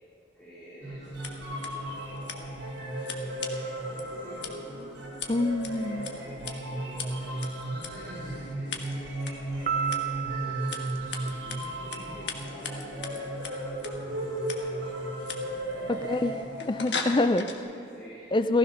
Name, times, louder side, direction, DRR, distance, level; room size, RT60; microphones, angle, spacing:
voice 1, 0.3-2.5 3.2-4.8 5.7-14.9 15.8-16.6 17.3-18.4, equal, ahead, -13 dB, 4.3 m, -50 dB
sound 1, 0.8-16.9, right 1 dB, 65° right, 5.0 m, -35 dB
Scissors, 1.0-17.6, left 5 dB, 60° left, 1.4 m, -41 dB
voice 2, 5.3-6.1 15.9-16.4 16.7-17.5 18.3-18.6, left 2 dB, 25° left, 11 dB, 0.4 m, -25 dB
Piano, 9.7-12.2, right 8 dB, 40° right, 0.8 m, -33 dB
16.0 x 15.5 x 5.8 m, 2.8 s
head